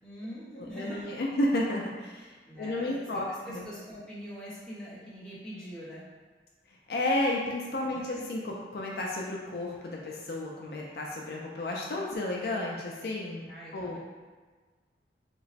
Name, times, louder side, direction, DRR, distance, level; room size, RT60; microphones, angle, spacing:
voice 1, 0.0-1.1 2.5-6.0 7.9-8.2 13.5-14.0, equal, 5° left, -10 dB, 0.8 m, -43 dB
voice 2, 0.6-3.6 6.9-13.4 13.7-14.0, left 1 dB, 60° left, -2 dB, 0.4 m, -32 dB
3.0 x 2.1 x 4.0 m, 1.4 s
head